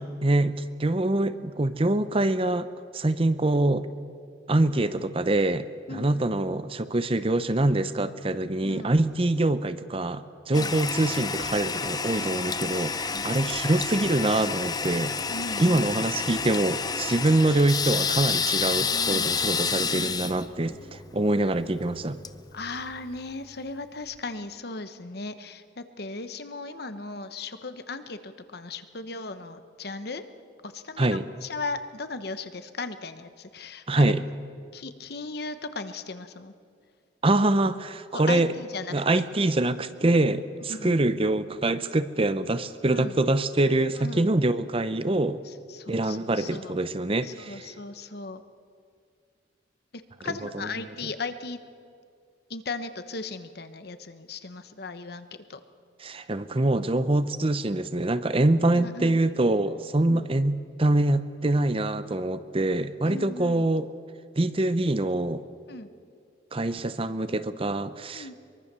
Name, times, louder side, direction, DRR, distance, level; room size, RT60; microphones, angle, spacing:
voice 1, 0.0-2.7 2.9-3.9 4.5-15.2 15.6-22.2 31.0-31.2 33.9-34.2 37.2-38.5 38.9-45.4 45.9-47.7 50.3-50.7 56.0-63.9 64.4-65.4 66.5-68.3, right 2 dB, 30° right, 13 dB, 0.7 m, -25 dB
voice 2, 5.9-6.3 8.6-8.9 10.5-10.7 13.0-13.3 15.3-15.9 18.9-19.3 22.5-30.2 30.6-34.1 34.7-36.5 38.1-39.2 40.7-41.0 42.9-43.2 43.9-44.3 45.4-46.8 47.2-48.4 49.9-51.6 52.5-55.6 58.7-59.2 60.1-60.2 63.0-63.6 65.7-65.9 68.1-68.3, left 3 dB, 55° left, 10 dB, 1.1 m, -37 dB
Toilet flush, 10.5-23.2, left 5 dB, 20° left, 0.7 m, -30 dB
23.0 x 23.0 x 6.9 m, 2.3 s
head